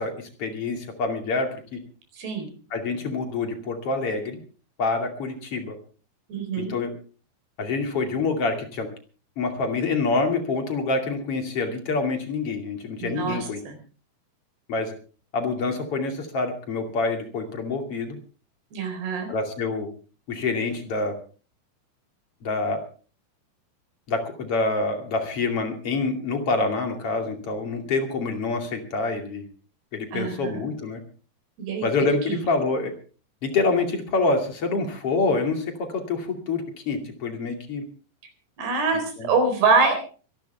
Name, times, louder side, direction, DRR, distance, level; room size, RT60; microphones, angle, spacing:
voice 1, 0.0-1.8 2.7-4.4 4.8-5.8 6.6-6.9 7.6-8.9 9.4-13.6 14.7-14.9 15.3-18.2 19.3-19.9 20.3-21.2 22.4-22.8 24.1-29.5 29.9-31.0 31.8-32.9 33.4-37.8 39.2-39.3, left 3 dB, 40° left, 4 dB, 3.1 m, -26 dB
voice 2, 2.2-2.5 6.3-6.8 13.0-13.8 18.7-19.3 30.1-30.7 31.6-31.9 32.2-32.5 38.6-40.0, right 4 dB, 90° right, 6 dB, 6.3 m, -25 dB
25.0 x 12.0 x 3.5 m, 0.38 s
omnidirectional pair, 4.5 m